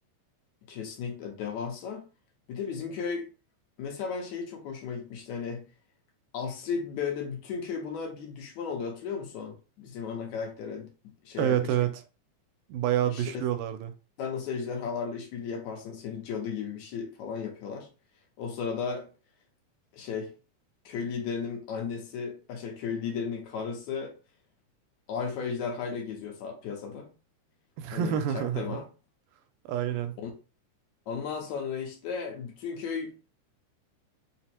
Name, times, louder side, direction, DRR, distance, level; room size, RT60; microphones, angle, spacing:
voice 1, 0.7-2.0 2.5-3.3 3.8-5.6 6.3-11.7 13.1-13.4 14.2-17.9 18.4-19.1 19.9-20.3 20.9-24.2 25.1-27.1 27.9-28.9 30.2-30.3 31.1-33.2, left 6 dB, 75° left, 2.0 m, -35 dB
voice 2, 11.4-11.9 12.7-13.9 27.8-28.6 29.7-30.2, right 10 dB, 85° right, 2.1 m, -27 dB
5.2 x 2.0 x 4.2 m
omnidirectional pair, 3.7 m